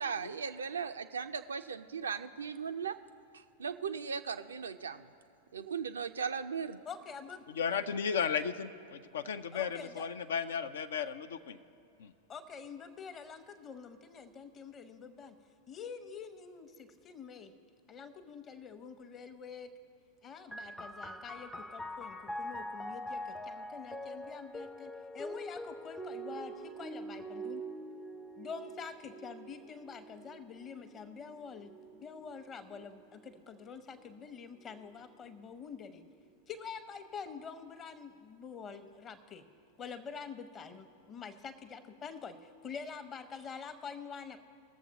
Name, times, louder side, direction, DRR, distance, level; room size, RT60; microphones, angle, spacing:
voice 1, 0.0-3.0 3.3-5.1 5.5-6.8, right 6 dB, 70° right, 9 dB, 0.4 m, -37 dB
voice 2, 6.8-7.5 9.5-10.1 12.3-15.4 15.7-17.5 17.9-19.7 20.2-27.7 28.4-36.1 36.5-39.4 39.8-44.4, left 6 dB, 25° left, 10 dB, 0.8 m, -46 dB
voice 3, 7.5-11.6 12.0-12.1, left 6 dB, 65° left, 11 dB, 0.4 m, -35 dB
sound 1, 20.5-33.7 34.6-35.4, equal, 5° left, 0.4 m, -44 dB
21.5 x 7.2 x 2.9 m, 2.6 s
figure-of-eight pair, 90°, 0 cm